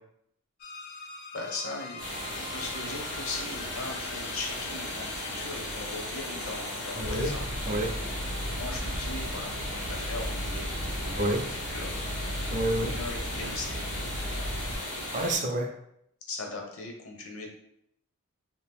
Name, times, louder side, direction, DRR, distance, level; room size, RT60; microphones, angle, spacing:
sound 1, 0.6-7.2, left 4 dB, 45° left, 0.3 m, -44 dB
voice 1, 1.3-2.0 2.3-7.4 8.5-10.7 11.0-11.9 12.8-13.8 16.3-17.5, left 3 dB, 70° left, 2 dB, 0.7 m, -39 dB
sound 2, 2.0-15.3, left 1 dB, 90° left, 1.3 m, -36 dB
voice 2, 7.0-7.3 7.6-7.9 11.2-11.4 12.5-12.9 14.7-14.8 15.1-15.8, right 1 dB, 35° right, 3 dB, 0.4 m, -28 dB
sound 3, 7.0-14.8, equal, 75° right, 0.7 m, -36 dB
2.8 x 2.5 x 3.5 m, 0.74 s
head